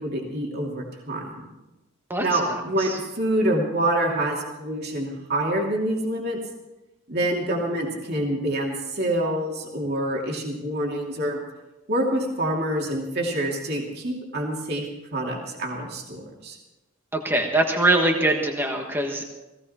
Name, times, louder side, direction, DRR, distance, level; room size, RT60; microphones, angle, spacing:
voice 1, 0.0-1.5 2.2-6.4 7.1-11.4 11.9-14.8 15.1-16.6, right 1 dB, 50° right, -1 dB, 2.7 m, -26 dB
voice 2, 17.1-19.2, right 2 dB, 10° right, 2 dB, 1.4 m, -22 dB
17.5 x 17.0 x 4.4 m, 1.0 s
head